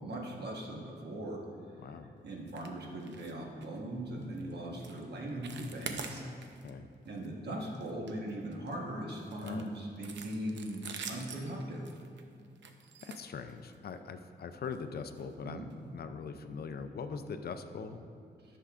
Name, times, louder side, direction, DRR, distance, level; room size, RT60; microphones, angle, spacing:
voice 1, 0.0-1.4 2.2-6.2 7.0-11.8 15.4-15.7, right 1 dB, 65° right, -1 dB, 1.3 m, -39 dB
voice 2, 1.8-2.1 4.6-4.8 6.6-6.9 9.4-9.7 13.0-18.0, left 5 dB, 60° left, 9 dB, 0.5 m, -42 dB
sound 1, 2.5-2.7 3.0-3.3 3.6-3.8 4.2-4.4 4.8-5.0 5.3-6.7 7.1-7.3 7.6-8.8 9.3-13.9 14.6-14.8 15.2-15.3 15.7-15.8, right 6 dB, 80° right, 0.6 m, -46 dB
13.5 x 6.7 x 2.5 m, 2.4 s
wide cardioid pair, 130°, 18 cm